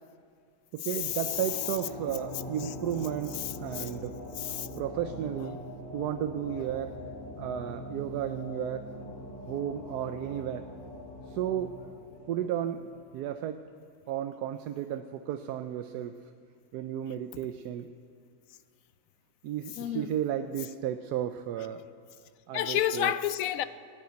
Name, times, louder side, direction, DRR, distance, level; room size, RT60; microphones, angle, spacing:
voice 1, 0.7-4.2 4.8-5.6 5.9-6.9 7.4-8.9 9.5-10.7 11.3-11.7 12.3-13.6 14.1-16.2 16.7-17.9 19.4-21.8 22.5-23.1, right 10 dB, 85° right, 1.2 m, -33 dB
sound 1, 0.9-13.5, left 1 dB, 50° left, 2.9 m, -42 dB
voice 2, 3.4-3.9 4.4-4.7 19.8-20.1 22.5-23.6, left 11 dB, 70° left, 0.9 m, -30 dB
14.5 x 9.7 x 9.2 m
omnidirectional pair, 1.7 m